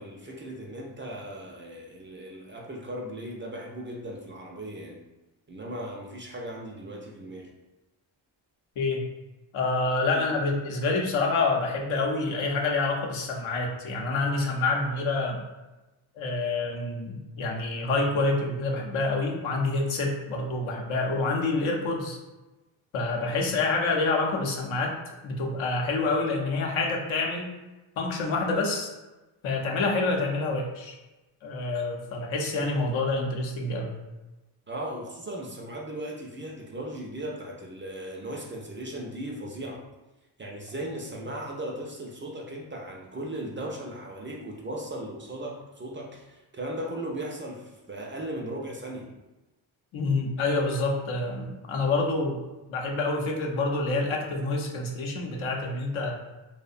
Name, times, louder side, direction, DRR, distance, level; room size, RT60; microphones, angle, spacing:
voice 1, 0.0-5.0 5.5-7.5 10.1-10.3 34.7-39.8 40.4-49.1, right 1 dB, 25° right, -1 dB, 0.4 m, -37 dB
voice 2, 9.5-15.4 16.2-22.2 22.9-25.0 25.2-27.5 28.0-28.9 29.4-30.9 31.4-34.0 49.9-52.4 52.7-56.2, left 3 dB, 75° left, 0 dB, 0.6 m, -27 dB
2.6 x 2.1 x 2.4 m, 1.1 s
cardioid pair, 60°, 48 cm